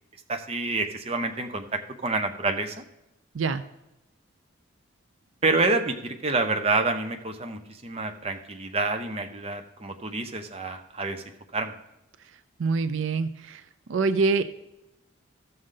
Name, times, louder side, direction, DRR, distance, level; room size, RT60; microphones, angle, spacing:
voice 1, 0.3-2.7 5.4-11.2 11.5-11.7, right 3 dB, 30° right, 5 dB, 0.6 m, -28 dB
voice 2, 12.6-13.6 13.9-14.4, right 4 dB, 75° right, 11 dB, 0.4 m, -25 dB
13.5 x 6.5 x 3.7 m, 0.92 s
head